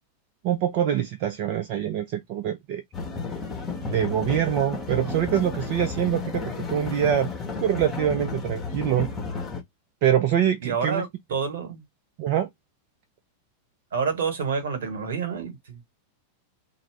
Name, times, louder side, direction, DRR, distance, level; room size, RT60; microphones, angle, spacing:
voice 1, 0.4-2.8 3.9-7.3 7.6-9.1 10.0-11.0 12.2-12.5, right 10 dB, 45° right, 0.4 m, -24 dB
sound 1, 2.9-9.6, left 4 dB, 20° left, 0.9 m, -32 dB
voice 2, 10.6-11.8 13.9-15.8, right 6 dB, 60° right, 1.2 m, -28 dB
2.3 x 2.0 x 3.4 m
figure-of-eight pair, 90°, 0 cm